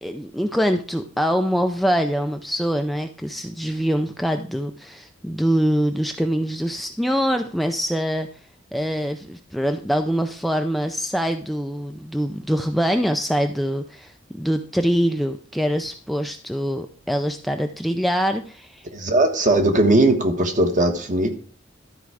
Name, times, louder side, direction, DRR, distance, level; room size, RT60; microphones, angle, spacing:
voice 1, 0.0-8.3 8.7-18.9, equal, ahead, 5 dB, 0.4 m, -24 dB
voice 2, 18.9-21.3, right 2 dB, 40° right, 5 dB, 1.3 m, -18 dB
12.5 x 4.7 x 4.7 m, 0.43 s
head